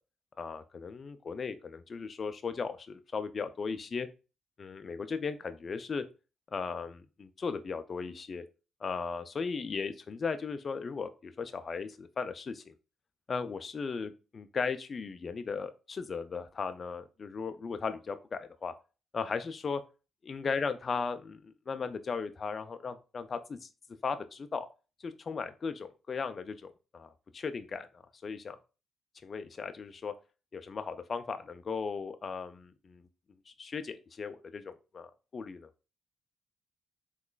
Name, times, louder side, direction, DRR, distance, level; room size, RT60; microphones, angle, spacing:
voice 1, 0.4-4.1 4.6-6.0 6.5-8.4 8.8-12.7 13.3-18.7 19.1-19.8 20.2-23.7 24.0-24.7 25.0-28.6 29.2-30.1 30.5-33.0 33.5-35.7, left 5 dB, 45° left, 10 dB, 0.3 m, -37 dB
3.7 x 3.0 x 2.3 m, 0.32 s
supercardioid pair, 55°, 0 cm